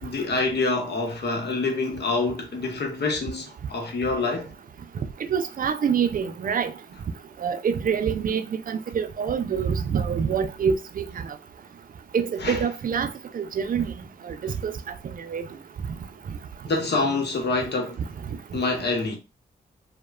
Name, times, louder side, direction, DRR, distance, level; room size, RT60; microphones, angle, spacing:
voice 1, 0.0-4.5 12.4-12.6 16.7-18.0 18.5-19.2, left 3 dB, 70° left, 0.8 m, -26 dB
voice 2, 5.3-6.7 7.4-8.4 8.7-11.0 12.1-13.1 13.3-13.9 14.4-14.7 15.3-15.4, right 7 dB, 50° right, 0.4 m, -25 dB
3.0 x 2.1 x 2.3 m
cardioid pair, 50°, 18 cm